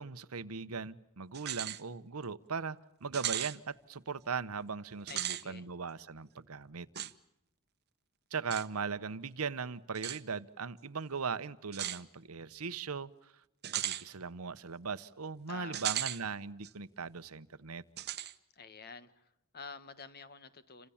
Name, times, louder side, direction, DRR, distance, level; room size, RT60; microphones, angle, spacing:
voice 1, 0.0-6.9 8.3-13.3 13.7-17.8, right 5 dB, 85° right, 14 dB, 1.0 m, -39 dB
sound 1, 1.3-1.8 2.2-2.3 3.1-3.6 5.0-5.4 6.9-7.1 8.5-8.7 9.9-10.2 11.7-12.0 13.6-14.0 15.7-16.2 16.6-16.7 18.0-18.3, right 12 dB, 50° right, 1.0 m, -36 dB
voice 2, 5.1-5.6 15.5-16.0 18.5-20.9, left 5 dB, 45° left, 12 dB, 1.5 m, -49 dB
29.0 x 26.5 x 7.2 m, 0.84 s
head